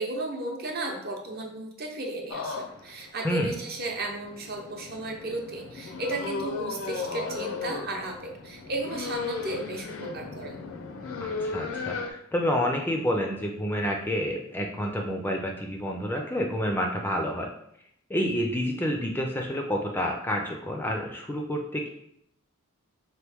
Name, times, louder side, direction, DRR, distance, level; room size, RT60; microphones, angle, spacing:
voice 1, 0.0-10.5, right 2 dB, 50° right, 1 dB, 0.7 m, -34 dB
sound 1, 2.3-12.1, left 4 dB, 75° left, 0.5 m, -36 dB
voice 2, 11.2-17.5 18.1-21.9, equal, 10° left, 1 dB, 0.4 m, -29 dB
3.9 x 3.0 x 3.4 m, 0.71 s
head